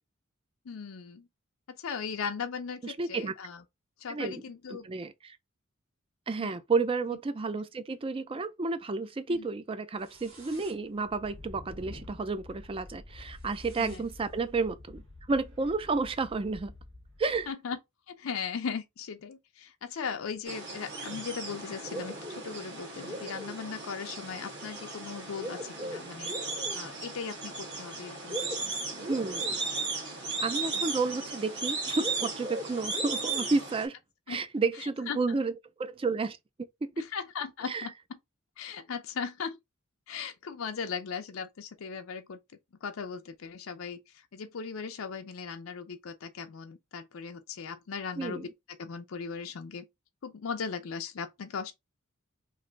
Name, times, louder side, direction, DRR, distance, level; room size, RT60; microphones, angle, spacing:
voice 1, 0.7-1.3 1.7-3.6 4.0-4.8 6.4-6.6 9.3-9.4 13.8-14.0 17.5-17.8 18.1-26.3 26.7-28.7 34.3-34.4 34.8-35.4 37.0-38.2 38.6-39.6 40.1-42.4 42.8-48.5 48.8-49.8 50.2-51.7, left 6 dB, 75° left, 0.5 m, -38 dB
voice 2, 2.8-3.3 4.1-4.4 4.7-5.4 6.3-15.0 15.3-16.7 17.2-17.5 29.1-29.4 30.4-33.9 34.3-35.5 35.8-36.4 36.8-36.9 37.7-37.9 48.2-48.5, right 4 dB, 25° right, 0.4 m, -31 dB
sound 1, 10.0-17.5, left 1 dB, 90° right, 1.7 m, -49 dB
sound 2, 20.5-33.9, right 3 dB, 55° right, 1.5 m, -36 dB
3.2 x 2.6 x 3.8 m
head